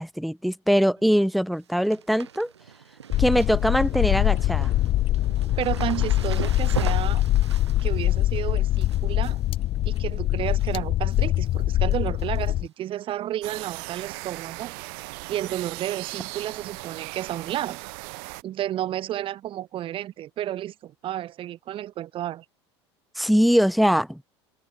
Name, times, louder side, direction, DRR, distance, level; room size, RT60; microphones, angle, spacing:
voice 1, 0.0-2.5 3.2-4.7 23.2-24.2, equal, ahead, 0.3 m, -22 dB
sound 1, 1.0-1.3 1.5-10.8 11.1-11.5 11.8-12.7 13.0-13.1 14.1-14.3 14.6-14.7 15.1-15.2 16.8-16.9 17.6-17.7, right 8 dB, 75° right, 4.6 m, -40 dB
sound 2, 3.1-12.7, left 14 dB, 40° left, 0.6 m, -23 dB
voice 2, 5.6-7.2 7.8-9.4 9.8-17.8 18.4-22.4, right 12 dB, 40° right, 1.4 m, -32 dB
sound 3, 13.4-18.4, right 35 dB, 55° right, 1.1 m, -38 dB
figure-of-eight pair, 75°, 14 cm